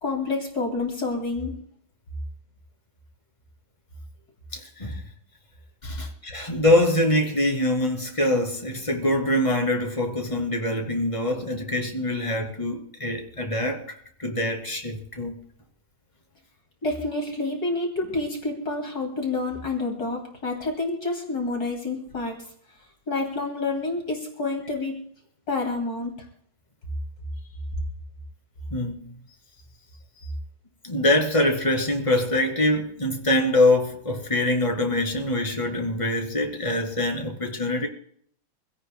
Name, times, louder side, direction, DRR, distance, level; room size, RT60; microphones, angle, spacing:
voice 1, 0.0-1.6 16.8-22.4 23.1-25.0 25.5-26.3, left 3 dB, 50° left, 2.8 m, -28 dB
voice 2, 4.5-5.0 5.8-13.8 14.2-15.3 28.7-29.1 30.8-37.9, left 1 dB, 15° left, 2.4 m, -24 dB
25.0 x 16.5 x 2.2 m
omnidirectional pair, 2.2 m